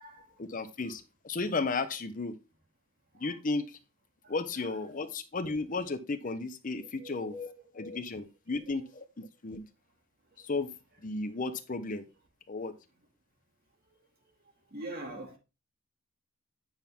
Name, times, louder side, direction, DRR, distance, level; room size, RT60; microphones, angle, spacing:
voice 1, 0.4-2.3 3.1-3.8 4.3-9.6 10.4-10.7 11.0-12.0 12.5-12.7, left 3 dB, 40° left, 11 dB, 0.7 m, -34 dB
voice 2, 4.6-4.9 7.0-7.6 14.7-15.4, right 2 dB, 50° right, 3 dB, 2.4 m, -44 dB
8.9 x 5.9 x 3.5 m, 0.28 s
head